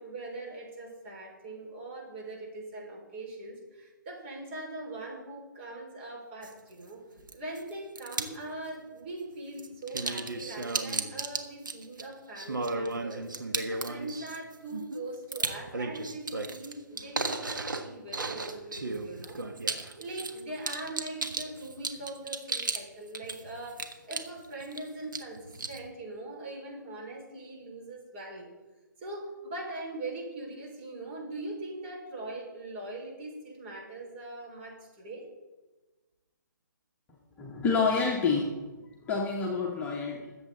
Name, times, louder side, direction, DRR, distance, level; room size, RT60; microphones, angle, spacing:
voice 1, 0.0-7.0 7.3-19.4 20.0-28.5 29.0-35.3, right 2 dB, 35° right, -1 dB, 5.1 m, -41 dB
sound 1, 6.4-6.5 7.3-7.6 8.0-8.4 9.6-22.8 23.1-24.8 25.1-25.8, right 3 dB, 75° right, 1.4 m, -34 dB
voice 2, 37.4-38.7 39.0-40.4, left 4 dB, 15° left, -2 dB, 1.4 m, -28 dB
21.5 x 7.9 x 4.0 m, 1.2 s
figure-of-eight pair, 135°, 11 cm